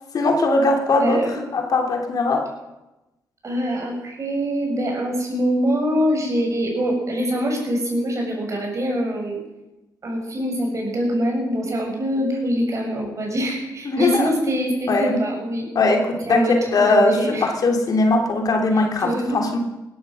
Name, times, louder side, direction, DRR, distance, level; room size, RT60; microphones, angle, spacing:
voice 1, 0.1-2.4 13.9-14.3 14.9-15.1 15.7-19.6, left 2 dB, 60° left, 2 dB, 3.0 m, -20 dB
voice 2, 1.0-1.4 3.4-9.4 10.0-15.7 16.2-17.5 18.7-19.4, equal, 45° right, 1 dB, 6.8 m, -24 dB
18.5 x 12.5 x 6.3 m, 1.0 s
cardioid pair, 75°, 7 cm